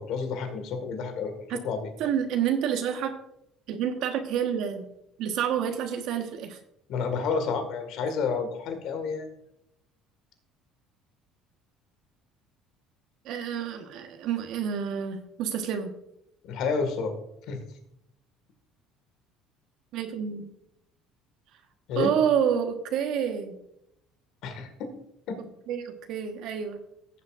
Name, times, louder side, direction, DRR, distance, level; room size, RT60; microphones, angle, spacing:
voice 1, 0.0-1.8 6.9-9.3 16.4-17.1 17.5-17.6 21.9-22.1 24.4-24.7, left 5 dB, 65° left, 6 dB, 1.8 m, -30 dB
voice 2, 2.0-3.1 3.7-4.9 5.2-6.6 13.2-15.9 19.9-20.5 21.9-23.6 25.7-26.8, right 8 dB, 70° right, 5 dB, 1.2 m, -28 dB
15.5 x 7.3 x 2.5 m, 0.77 s
supercardioid pair, 85°, 0 cm